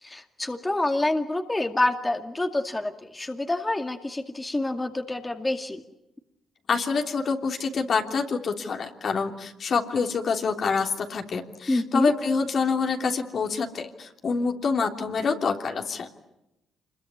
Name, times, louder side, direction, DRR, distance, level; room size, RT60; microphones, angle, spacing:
voice 1, 0.0-5.8 11.7-12.1, left 2 dB, 20° left, 5 dB, 2.3 m, -27 dB
voice 2, 6.7-16.1, left 5 dB, 55° left, 3 dB, 3.2 m, -26 dB
27.0 x 22.0 x 9.8 m, 0.89 s
supercardioid pair, 60°, 0 cm